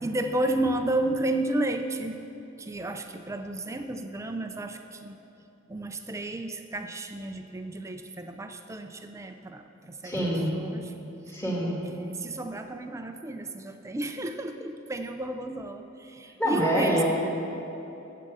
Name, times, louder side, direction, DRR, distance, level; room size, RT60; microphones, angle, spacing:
voice 1, 0.0-2.2 2.6-5.2 5.7-10.1 10.5-10.9 11.8-17.0, right 1 dB, 15° right, 6 dB, 0.4 m, -32 dB
voice 2, 10.0-10.5 11.3-11.8 16.4-17.0, equal, 15° left, -5 dB, 2.2 m, -25 dB
8.7 x 7.6 x 7.7 m, 2.9 s
head